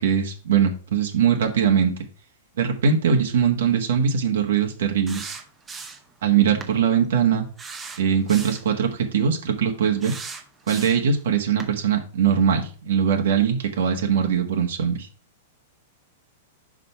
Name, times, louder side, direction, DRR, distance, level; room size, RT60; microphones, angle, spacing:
voice 1, 0.0-1.9 2.6-5.4 6.2-7.5 8.0-10.1 10.7-15.1, right 7 dB, 80° right, 3 dB, 1.4 m, -21 dB
sound 1, 5.1-6.1 6.6-6.8 7.6-8.7 10.0-11.1 11.6-11.7, right 5 dB, 15° right, 0.8 m, -37 dB
5.3 x 5.1 x 5.6 m, 0.37 s
supercardioid pair, 150°, 0 cm